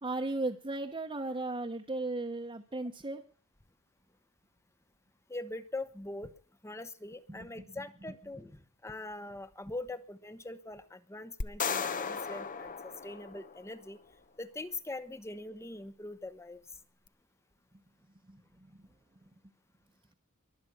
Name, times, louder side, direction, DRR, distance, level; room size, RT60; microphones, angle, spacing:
voice 1, 0.0-3.2 7.3-8.5 18.3-18.8, right 2 dB, 25° right, 0 dB, 1.0 m, -37 dB
voice 2, 5.3-6.3 6.6-12.7 13.0-14.0 14.4-16.6, left 2 dB, 10° left, 13 dB, 1.0 m, -42 dB
sound 1, 11.4-13.8, left 6 dB, 35° left, 0.8 m, -36 dB
22.5 x 8.4 x 6.1 m, 0.41 s
head